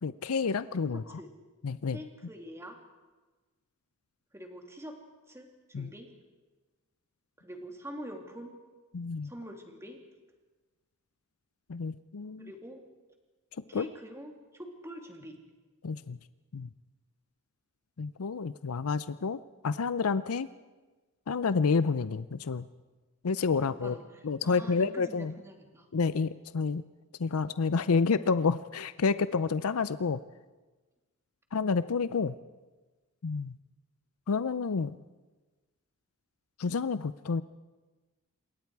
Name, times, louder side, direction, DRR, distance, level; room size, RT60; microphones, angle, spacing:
voice 1, 0.0-1.2 1.6-2.0 5.7-5.9 8.9-9.3 11.7-12.5 13.7-13.9 15.8-16.2 16.5-16.7 18.0-20.5 21.3-22.7 23.2-24.0 24.2-25.3 25.9-26.8 27.2-30.2 31.5-32.3 33.2-33.5 34.3-35.0 36.6-37.4, left 5 dB, 85° left, 14 dB, 0.6 m, -29 dB
voice 2, 0.9-1.3 1.9-2.8 4.3-5.0 5.3-6.1 7.4-8.5 9.2-10.0 12.4-12.8 13.7-15.4 23.6-25.9, equal, 15° right, 3 dB, 2.6 m, -45 dB
27.0 x 22.5 x 4.8 m, 1.2 s
head